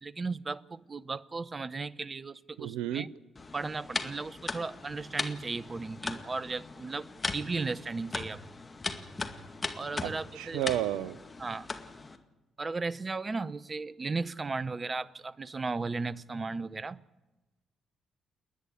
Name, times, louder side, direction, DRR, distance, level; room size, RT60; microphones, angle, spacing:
voice 1, 0.0-3.1 3.5-7.1 7.3-8.4 9.7-10.8 11.4-11.7 12.6-17.0, right 3 dB, 35° right, 19 dB, 0.8 m, -35 dB
voice 2, 2.6-3.1 10.0-11.2, right 13 dB, 75° right, 18 dB, 0.7 m, -32 dB
sound 1, 3.4-12.2, left 3 dB, 30° left, 2.1 m, -39 dB
29.5 x 10.0 x 9.8 m, 1.1 s
hypercardioid pair, 45°, 0 cm